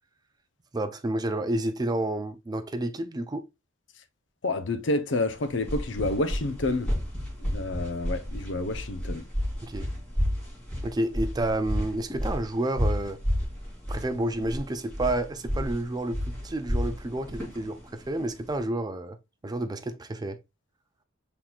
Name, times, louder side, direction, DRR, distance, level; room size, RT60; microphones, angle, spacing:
voice 1, 0.7-3.5 9.6-9.9 10.8-13.2 13.9-19.2 19.4-20.4, right 1 dB, 20° right, 0.4 m, -30 dB
voice 2, 4.4-6.9 7.5-9.2, left 2 dB, 65° left, 0.7 m, -29 dB
sound 1, 5.4-18.6, equal, 5° left, 3.2 m, -31 dB
6.0 x 3.7 x 2.3 m
head